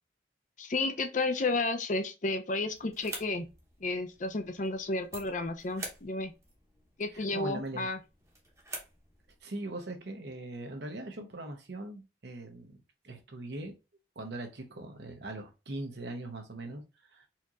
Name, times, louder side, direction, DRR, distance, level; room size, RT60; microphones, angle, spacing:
voice 1, 0.6-3.5 3.8-6.3 7.0-8.0, left 3 dB, 45° left, 0.6 m, -32 dB
sound 1, 2.7-9.4, right 2 dB, 15° right, 0.9 m, -48 dB
voice 2, 7.1-7.9 9.4-12.8 13.0-13.7 14.2-16.8 17.1-17.3, right 2 dB, 70° right, 0.9 m, -40 dB
4.3 x 2.9 x 2.4 m
head